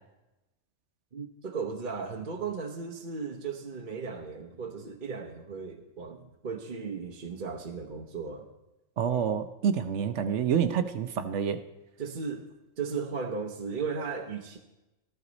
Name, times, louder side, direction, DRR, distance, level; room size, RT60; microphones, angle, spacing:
voice 1, 1.1-8.5 12.0-12.5 12.8-14.6, right 5 dB, 40° right, 3 dB, 1.1 m, -36 dB
voice 2, 9.0-11.6, right 7 dB, 65° right, 10 dB, 1.0 m, -28 dB
14.0 x 13.5 x 4.0 m, 0.99 s
omnidirectional pair, 1.4 m